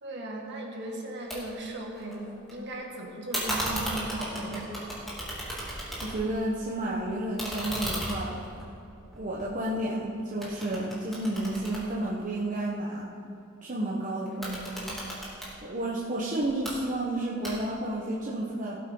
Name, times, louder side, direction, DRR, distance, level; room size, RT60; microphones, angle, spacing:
voice 1, 0.0-4.9, right 1 dB, 55° right, 0 dB, 2.0 m, -37 dB
sound 1, 1.3-1.4 1.7-2.5 3.3-6.4 6.7-10.0 10.4-12.6 14.3-15.5 16.4-16.7 17.4-17.9, equal, ahead, 2.8 m, -35 dB
voice 2, 6.0-8.5 9.1-13.1 13.6-14.9 15.2-18.8, right 1 dB, 40° right, -5 dB, 1.1 m, -31 dB
17.5 x 8.3 x 3.9 m, 2.8 s
head